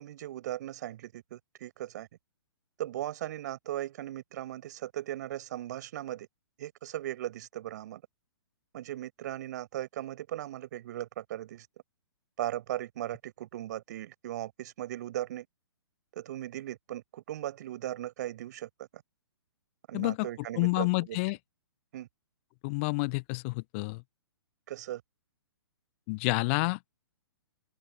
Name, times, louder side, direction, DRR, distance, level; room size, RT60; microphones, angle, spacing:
voice 1, 0.0-2.1 2.8-6.3 6.6-8.0 8.7-11.7 12.4-15.5 16.2-19.0 19.9-21.2 21.9-22.1 24.7-25.0, right 13 dB, 40° right, 5.3 m, -38 dB
voice 2, 19.9-20.3 20.6-21.4 22.6-24.0 26.1-26.8, left 28 dB, 30° left, 1.1 m, -29 dB
open air
figure-of-eight pair, 120°, 14 cm